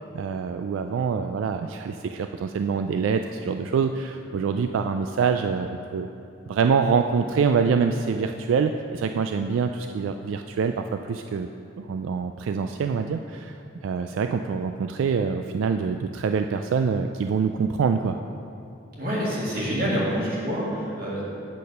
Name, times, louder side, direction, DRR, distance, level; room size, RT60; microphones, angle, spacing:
voice 1, 0.1-6.1 6.5-11.5 11.8-13.6 13.8-18.2, right 5 dB, 80° right, 6 dB, 0.3 m, -25 dB
voice 2, 19.0-21.2, equal, 45° right, -6 dB, 2.3 m, -27 dB
8.3 x 6.5 x 5.4 m, 2.6 s
head